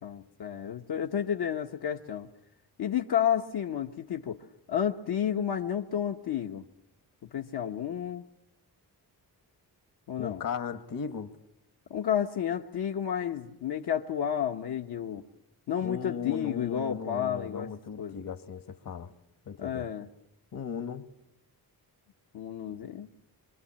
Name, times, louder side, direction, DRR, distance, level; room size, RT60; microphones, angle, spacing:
voice 1, 0.0-2.3 2.8-4.4 4.7-6.6 7.3-8.3 10.1-10.4 11.9-15.2 15.7-17.7 18.0-18.2 19.6-20.1 22.3-23.1, left 9 dB, 75° left, 1.1 m, -31 dB
voice 2, 10.2-11.4 15.8-19.1 19.5-19.9 20.5-21.1, left 6 dB, 55° left, 1.3 m, -37 dB
25.5 x 24.0 x 8.7 m
wide cardioid pair, 150°, 39 cm